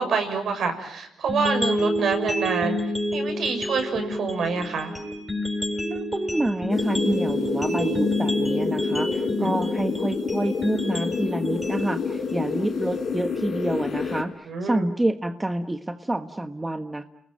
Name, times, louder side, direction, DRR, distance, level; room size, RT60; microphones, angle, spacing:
voice 1, 0.0-2.8 3.1-4.9 9.3-9.5 14.5-14.9, right 5 dB, 60° right, 6 dB, 6.8 m, -27 dB
sound 1, 1.3-13.3, left 1 dB, 5° left, 7.3 m, -29 dB
voice 2, 5.9-17.0, right 1 dB, 15° right, 7 dB, 1.4 m, -28 dB
sound 2, 6.7-14.2, left 6 dB, 60° left, 5.0 m, -29 dB
30.0 x 20.5 x 9.2 m, 0.75 s
cardioid pair, 90°, 0 cm